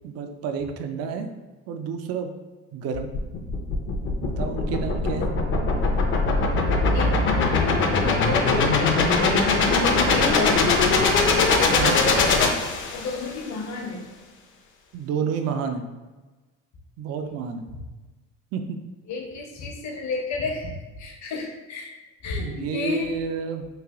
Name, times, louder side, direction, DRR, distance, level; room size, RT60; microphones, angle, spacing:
voice 1, 0.0-1.3 1.7-2.3 2.7-3.1 4.2-5.3 11.7-12.0 14.9-15.8 17.0-17.7 18.5-18.8 22.4-23.7, right 6 dB, 50° right, 6 dB, 0.4 m, -30 dB
sound 1, 2.9-13.3, left 3 dB, 35° left, 0.6 m, -21 dB
voice 2, 6.9-10.7 12.9-14.1 17.2-17.3 19.1-22.0 22.2-23.2, left 3 dB, 55° left, 1 dB, 0.9 m, -31 dB
3.2 x 2.5 x 3.5 m, 1.2 s
supercardioid pair, 105°, 33 cm